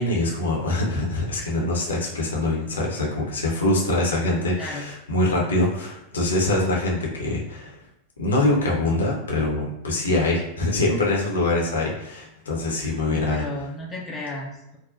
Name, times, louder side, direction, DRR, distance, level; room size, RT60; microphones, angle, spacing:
voice 1, 0.0-7.8 8.2-13.5, left 2 dB, 70° left, -2 dB, 0.8 m, -24 dB
voice 2, 4.6-4.9 13.1-14.8, left 1 dB, 20° left, -2 dB, 0.6 m, -33 dB
3.9 x 2.2 x 2.4 m, 0.81 s
figure-of-eight pair, 90°, 0 cm